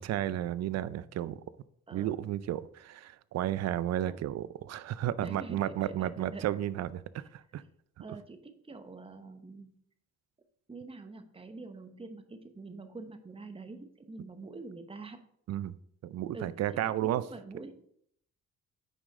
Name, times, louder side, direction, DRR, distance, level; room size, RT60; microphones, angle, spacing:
voice 1, 0.0-1.4 1.9-7.6 8.0-8.1 15.5-15.7 16.0-17.2, right 12 dB, 60° right, 0.5 m, -33 dB
voice 2, 1.9-2.2 4.0-4.3 5.2-6.6 7.2-7.7 8.0-9.7 10.7-15.2 16.3-17.9, right 3 dB, 20° right, 0.9 m, -46 dB
9.0 x 5.0 x 3.7 m
cardioid pair, 90°, 30 cm